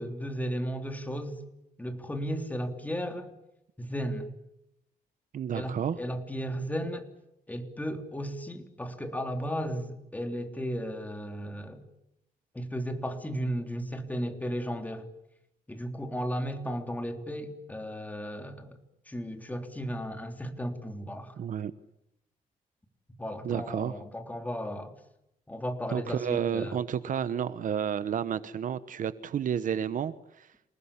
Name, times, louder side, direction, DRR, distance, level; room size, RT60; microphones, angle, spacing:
voice 1, 0.0-1.4 1.8-3.3 3.8-4.3 5.5-7.1 7.5-11.8 12.5-15.1 15.7-18.8 19.1-21.4 23.2-24.9 25.5-26.8, equal, 10° left, 6 dB, 3.5 m, -35 dB
voice 2, 5.3-6.0 21.4-21.7 23.4-24.0 25.9-30.5, right 8 dB, 60° right, 14 dB, 1.2 m, -31 dB
28.5 x 19.5 x 8.5 m, 0.83 s
cardioid pair, 120°, 15 cm